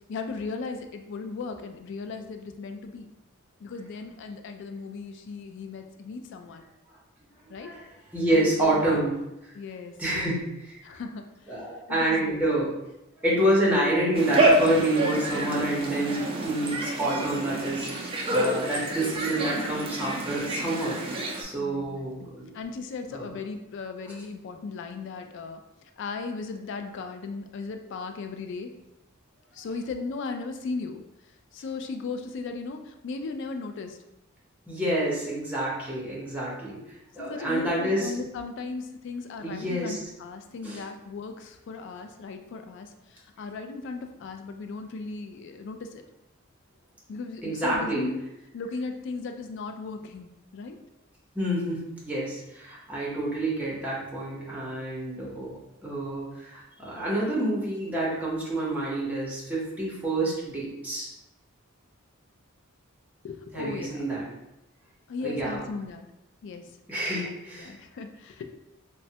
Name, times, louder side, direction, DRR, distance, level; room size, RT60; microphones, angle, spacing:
voice 1, 0.1-3.1 3.6-6.7 7.5-7.7 8.3-9.1 9.5-10.4 10.8-12.4 21.6-25.6 26.0-28.7 29.5-31.0 31.5-34.0 37.2-46.0 47.1-48.2 48.5-50.8 63.2-64.0 65.1-66.1 66.4-66.6 67.2-68.5, left 4 dB, 60° left, 6 dB, 0.3 m, -37 dB
voice 2, 7.6-9.2 10.0-10.4 10.7-10.8 11.5-12.7 13.2-22.5 23.1-23.3 34.7-38.1 39.4-40.0 40.6-40.8 47.4-48.1 51.3-55.5 55.8-61.1 63.5-64.3 65.2-65.6 66.9-67.7, right 1 dB, 5° right, -6 dB, 0.8 m, -28 dB
sound 1, 14.1-21.4, right 1 dB, 25° right, 0.4 m, -27 dB
3.1 x 2.1 x 2.7 m, 0.91 s
head